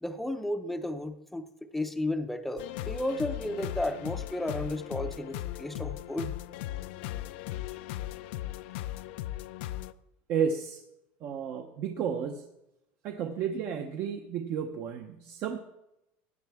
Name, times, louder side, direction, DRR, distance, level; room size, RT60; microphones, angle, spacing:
voice 1, 0.0-1.4 1.7-6.3, left 1 dB, ahead, 7 dB, 0.6 m, -33 dB
sound 1, 2.6-9.9, left 14 dB, 75° left, 0.4 m, -37 dB
voice 2, 10.3-10.8 11.2-12.5 13.0-15.7, right 7 dB, 40° right, 6 dB, 0.8 m, -32 dB
15.5 x 9.7 x 3.5 m, 0.89 s
cardioid pair, 170°, 6 cm